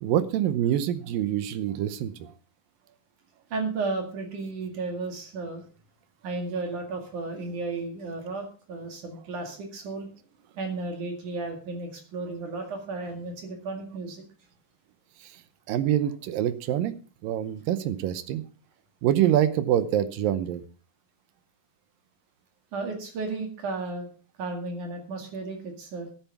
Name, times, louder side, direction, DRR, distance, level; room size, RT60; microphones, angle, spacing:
voice 1, 0.0-2.3 15.2-15.3 15.7-16.9 17.2-18.4 19.0-20.6, right 11 dB, 75° right, 13 dB, 2.4 m, -25 dB
voice 2, 3.5-5.6 6.2-10.1 10.6-14.2 22.7-24.1 24.4-26.1, right 3 dB, 60° right, 3 dB, 3.4 m, -33 dB
12.0 x 9.1 x 5.8 m, 0.39 s
omnidirectional pair, 4.2 m